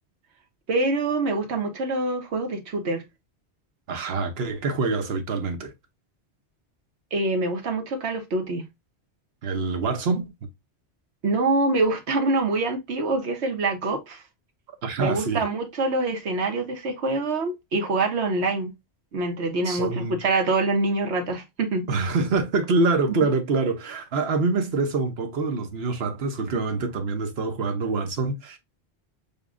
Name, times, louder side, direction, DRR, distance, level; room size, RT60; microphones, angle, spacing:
voice 1, 0.7-3.0 7.1-8.7 11.2-14.2 15.0-18.7 19.1-21.9, right 2 dB, 85° right, 1.3 m, -25 dB
voice 2, 3.9-5.7 9.4-10.2 14.8-15.4 19.6-20.2 21.9-28.6, right 3 dB, 70° right, 1.1 m, -25 dB
6.8 x 2.3 x 2.5 m
omnidirectional pair, 1.1 m